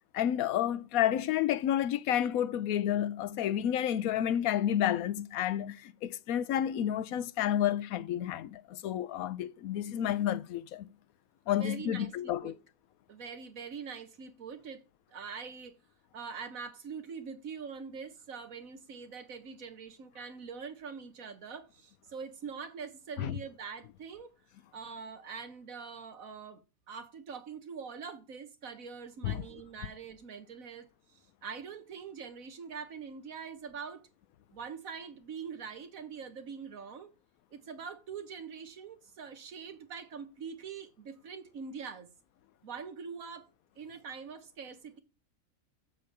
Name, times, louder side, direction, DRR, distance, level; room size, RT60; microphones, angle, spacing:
voice 1, 0.1-10.9 11.5-12.5 23.2-23.4 29.2-29.4, left 11 dB, 85° left, 1.1 m, -30 dB
voice 2, 11.6-12.5 13.1-14.8 15.1-15.8 16.1-24.3 24.7-26.6 26.9-34.1 34.5-37.1 37.5-42.1 42.6-43.5 43.8-45.0, right 6 dB, 75° right, 1.7 m, -44 dB
7.7 x 5.3 x 6.7 m
omnidirectional pair, 1.5 m